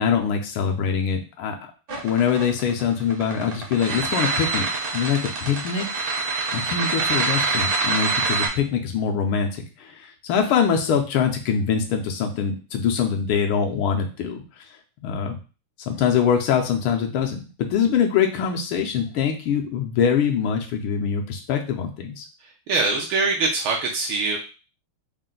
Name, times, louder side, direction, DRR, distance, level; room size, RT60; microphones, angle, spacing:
voice 1, 0.0-1.6 2.0-4.7 4.9-5.9 6.5-14.6 15.0-15.4 15.8-22.2, left 7 dB, 75° left, 3 dB, 1.4 m, -23 dB
sound 1, 1.9-8.5, right 4 dB, 50° right, 1.0 m, -25 dB
voice 2, 22.7-24.4, right 3 dB, 75° right, 0 dB, 1.5 m, -23 dB
4.4 x 2.1 x 3.7 m, 0.33 s
omnidirectional pair, 2.4 m